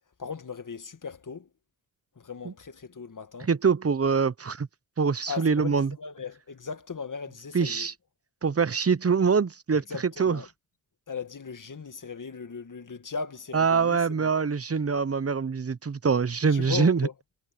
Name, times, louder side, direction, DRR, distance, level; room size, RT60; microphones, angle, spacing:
voice 1, 0.2-1.5 2.2-3.5 5.3-7.9 9.9-10.5 11.1-14.3 16.5-17.1, left 5 dB, 45° left, 2.2 m, -37 dB
voice 2, 3.4-4.7 5.0-5.9 7.5-7.9 8.4-9.8 10.2-10.4 13.5-17.1, right 5 dB, 35° right, 1.0 m, -24 dB
supercardioid pair, 45°, 42 cm